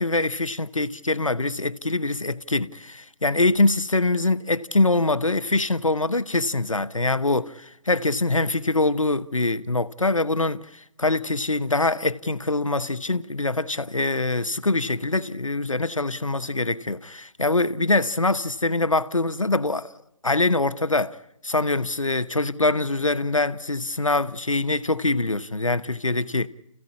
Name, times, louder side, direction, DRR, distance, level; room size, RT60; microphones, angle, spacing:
voice 1, 0.0-19.9 20.2-21.2 21.4-26.5, left 2 dB, 80° left, 1.0 m, -24 dB
29.5 x 15.5 x 8.6 m
figure-of-eight pair, 140°, 17 cm